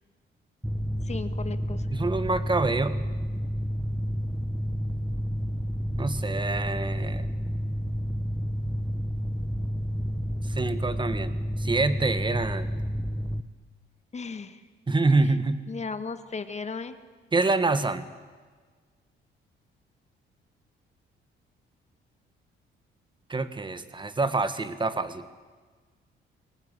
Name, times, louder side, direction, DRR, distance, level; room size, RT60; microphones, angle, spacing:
Mechanical fan, 0.6-13.4, equal, 5° right, 1.1 m, -30 dB
voice 1, 1.0-1.9 14.1-14.6 15.2-15.3 15.7-17.0, left 4 dB, 35° left, 10 dB, 1.7 m, -36 dB
voice 2, 1.9-3.0 6.0-7.3 10.4-12.8 14.9-15.6 17.3-18.1 23.3-25.3, right 3 dB, 25° right, 11 dB, 1.6 m, -26 dB
22.5 x 19.0 x 8.3 m, 1.5 s
cardioid pair, 90°, 20 cm